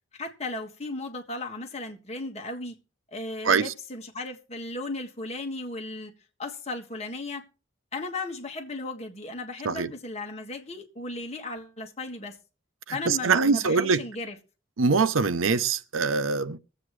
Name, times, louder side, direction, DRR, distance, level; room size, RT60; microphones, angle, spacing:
voice 1, 0.1-2.8 3.1-6.1 6.4-7.4 7.9-12.4 12.9-14.4, left 2 dB, 30° left, 1.7 m, -36 dB
voice 2, 12.9-14.0 14.8-16.6, right 4 dB, 85° right, 0.7 m, -23 dB
23.0 x 8.0 x 3.2 m
head